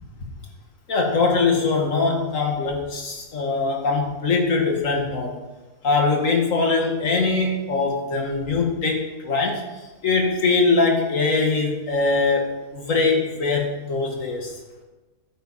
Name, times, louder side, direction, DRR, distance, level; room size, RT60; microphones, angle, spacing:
voice 1, 0.9-5.3 5.8-9.6 10.0-14.5, left 3 dB, 65° left, 2 dB, 2.2 m, -22 dB
12.0 x 9.7 x 4.2 m, 1.1 s
omnidirectional pair, 1.5 m